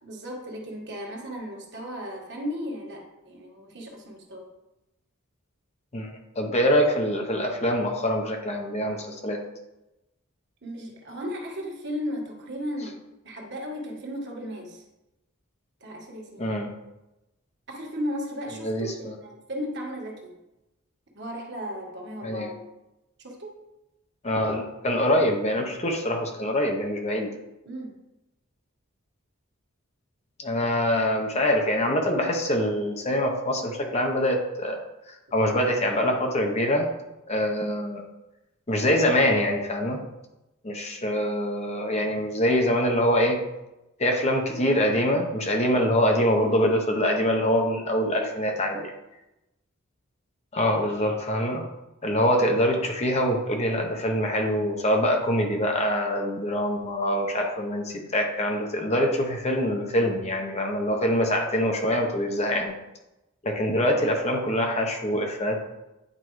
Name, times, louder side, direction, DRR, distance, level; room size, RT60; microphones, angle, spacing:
voice 1, 0.0-4.4 10.6-14.8 15.8-16.5 17.7-20.3 21.1-22.6 23.2-23.6 27.6-28.0 48.1-48.3, equal, 55° right, -1 dB, 1.5 m, -35 dB
voice 2, 5.9-9.4 16.4-16.7 18.6-19.1 22.2-22.5 24.2-27.3 30.4-34.8 35.3-36.9 37.3-38.0 38.7-40.0 40.6-43.4 44.0-48.9 50.5-51.6 52.0-62.7 63.4-65.8, equal, 30° left, 2 dB, 0.8 m, -24 dB
9.9 x 4.5 x 3.1 m, 0.96 s
head